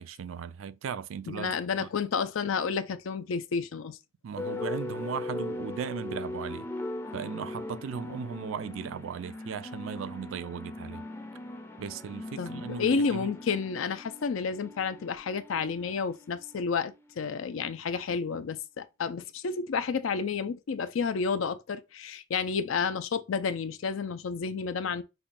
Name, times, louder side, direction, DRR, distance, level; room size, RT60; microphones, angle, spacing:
voice 1, 0.0-1.5 1.8-1.9 4.2-6.7 7.1-11.1 11.8-13.3, right 6 dB, 80° right, 0.4 m, -37 dB
voice 2, 1.3-4.0 12.4-25.0, left 5 dB, 85° left, 0.4 m, -31 dB
sound 1, 4.4-17.7, left 2 dB, 10° left, 0.4 m, -40 dB
5.5 x 2.2 x 2.5 m
head